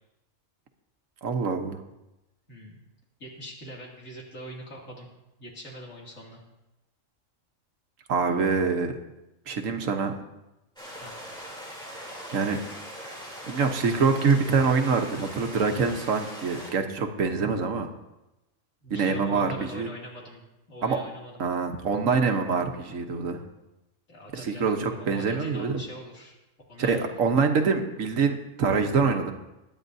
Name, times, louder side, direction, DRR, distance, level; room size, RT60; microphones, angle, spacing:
voice 1, 1.2-1.8 8.1-8.9 9.5-10.1 12.3-12.6 13.4-17.9 18.9-19.9 20.8-21.0 21.4-23.4 24.3-25.7 26.8-29.3, right 5 dB, 85° right, 5 dB, 1.4 m, -25 dB
voice 2, 2.5-2.8 3.2-5.1 5.4-6.4 11.0-11.2 18.8-21.4 24.1-26.4 26.7-27.1, equal, 90° left, -3 dB, 2.9 m, -42 dB
sound 1, 10.8-16.7, equal, 5° left, 3.2 m, -41 dB
22.0 x 9.3 x 2.7 m, 0.97 s
omnidirectional pair, 1.3 m